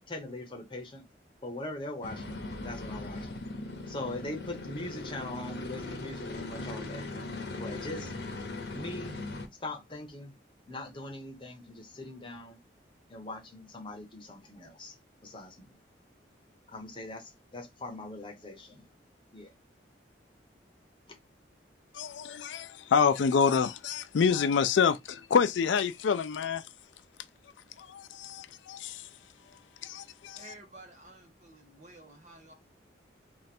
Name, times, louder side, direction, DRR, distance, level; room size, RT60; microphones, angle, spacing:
voice 1, 0.1-1.0 1.4-3.4 3.9-7.1 7.5-8.1 8.6-9.1 9.6-10.3 10.7-12.6 13.1-14.9 15.2-15.7 16.7-18.8 19.3-19.5, left 2 dB, 25° left, 1.0 m, -41 dB
sound 1, 2.0-9.5, left 2 dB, 65° left, 0.8 m, -39 dB
voice 2, 21.9-26.7 27.8-30.5, left 6 dB, 85° left, 0.4 m, -28 dB
voice 3, 30.3-32.5, right 2 dB, 40° right, 1.2 m, -52 dB
3.1 x 2.5 x 4.2 m
head